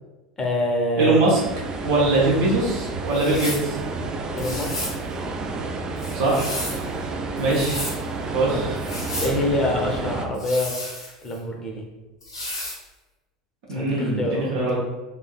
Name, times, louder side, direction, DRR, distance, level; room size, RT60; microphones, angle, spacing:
voice 1, 0.4-1.2 2.1-2.2 4.3-4.7 8.5-8.6 9.2-11.9 13.7-14.5, left 1 dB, 20° left, 0 dB, 0.7 m, -26 dB
voice 2, 1.0-1.4 1.8-3.8 6.1-7.0 7.4-7.9 8.3-8.7 13.7-14.8, right 2 dB, 55° right, -5 dB, 0.9 m, -22 dB
sound 1, 1.3-10.3, right 3 dB, 25° right, 0.3 m, -30 dB
sound 2, 3.1-3.7 4.4-5.0 6.0-6.8 7.4-8.0 8.8-9.4 10.3-11.4 12.2-12.8, left 1 dB, 80° left, 0.8 m, -32 dB
3.2 x 2.6 x 2.3 m, 1.1 s
figure-of-eight pair, 75°, 3 cm